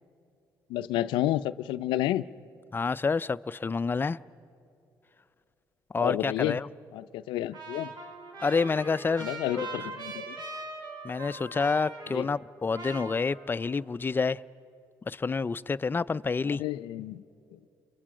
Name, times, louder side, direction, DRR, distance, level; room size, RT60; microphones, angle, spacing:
voice 1, 0.7-2.2 6.0-6.6 6.9-7.9 9.2-10.4 12.1-12.3 16.4-17.2 17.5-17.6, left 14 dB, 85° left, 0.4 m, -30 dB
voice 2, 2.7-4.2 5.9-6.7 8.4-9.8 11.0-14.4 15.1-16.6, left 4 dB, 25° left, 0.4 m, -28 dB
Trumpet, 7.5-12.5 12.7-13.8, right 3 dB, 65° right, 2.8 m, -41 dB
28.5 x 23.5 x 5.0 m
supercardioid pair, 65°, 8 cm